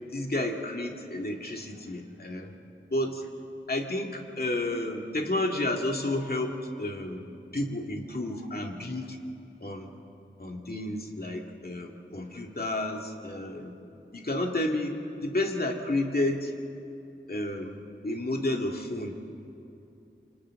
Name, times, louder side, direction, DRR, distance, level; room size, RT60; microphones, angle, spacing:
voice 1, 0.1-2.5 2.9-3.3 3.7-7.3 7.5-9.2 9.6-9.9 10.4-13.7 14.1-16.5 17.3-17.8 18.0-19.2, left 1 dB, 50° left, 2 dB, 2.2 m, -31 dB
28.0 x 25.0 x 3.8 m, 2.8 s
wide cardioid pair, 50°, 20 cm